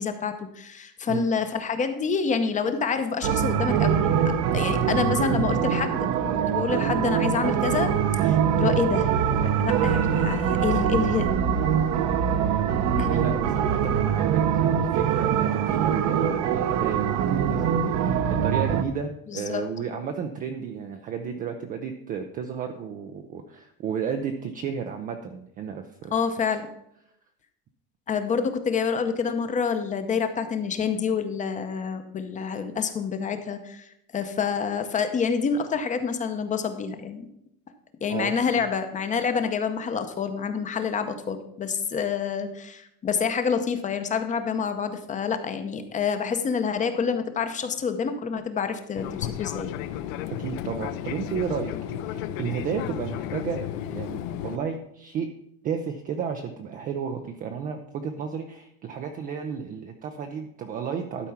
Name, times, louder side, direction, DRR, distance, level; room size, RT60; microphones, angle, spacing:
voice 1, 0.0-4.2 4.5-9.1 9.6-11.3 13.0-13.2 19.3-19.6 26.1-26.7 28.1-33.8 34.1-37.3 38.0-49.7, left 6 dB, 15° left, 9 dB, 0.6 m, -27 dB
sound 1, 3.2-18.8, right 8 dB, 40° right, 0.7 m, -23 dB
voice 2, 13.1-26.1 38.1-38.7 50.4-55.3 55.6-61.3, right 7 dB, 20° right, 5 dB, 0.3 m, -33 dB
Fixed-wing aircraft airplane, 48.9-54.6, left 11 dB, 65° left, 0.7 m, -33 dB
12.0 x 4.5 x 5.7 m, 0.77 s
supercardioid pair, 145°, 44 cm